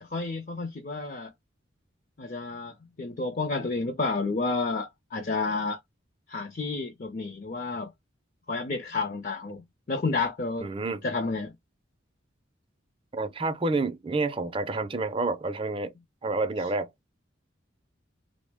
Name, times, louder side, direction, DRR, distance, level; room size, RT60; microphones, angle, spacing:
voice 1, 0.0-1.3 2.2-5.8 6.3-7.9 8.5-10.7 11.0-11.5, left 3 dB, 45° left, 0.5 m, -30 dB
voice 2, 10.6-11.0 13.1-15.9 16.2-16.9, right 3 dB, 25° right, 0.4 m, -29 dB
3.4 x 2.0 x 3.3 m
head